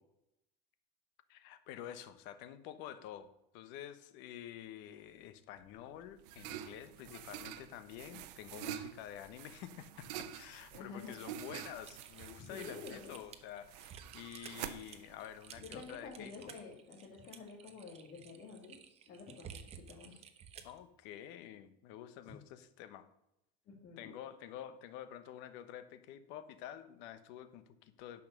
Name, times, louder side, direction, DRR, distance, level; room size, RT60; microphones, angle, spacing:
voice 1, 1.3-3.3 3.5-16.5 20.6-23.1 24.0-28.2, left 11 dB, 65° left, 11 dB, 1.1 m, -49 dB
sound 1, 5.6-16.2, right 11 dB, 85° right, 0.8 m, -48 dB
voice 2, 10.7-11.2 12.4-13.2 15.6-18.8 19.1-20.2 22.1-22.2 23.7-24.2, left 4 dB, 45° left, -3 dB, 2.3 m, -49 dB
Typing, 11.8-20.8, right 8 dB, 30° right, 1.0 m, -54 dB
11.0 x 5.7 x 6.7 m, 0.83 s
supercardioid pair, 140°, 20 cm